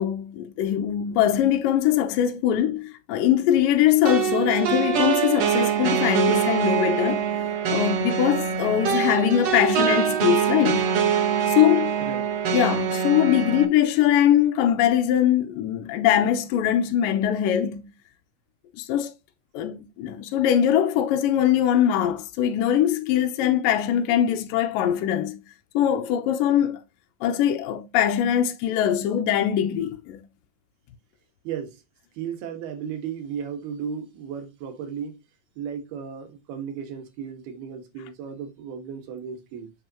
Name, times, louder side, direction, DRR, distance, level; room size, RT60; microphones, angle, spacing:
voice 1, 0.0-7.3 7.7-10.9 11.5-11.9 12.5-17.8 18.8-19.1 19.5-25.4 25.7-26.8 27.2-30.2, left 10 dB, 75° left, 2.4 m, -22 dB
sound 1, 4.0-13.6, right 7 dB, 55° right, 2.1 m, -24 dB
voice 2, 12.0-12.4 31.4-31.8 32.1-35.2 35.6-39.7, right 7 dB, 85° right, 3.6 m, -35 dB
7.7 x 6.6 x 2.9 m
omnidirectional pair, 4.3 m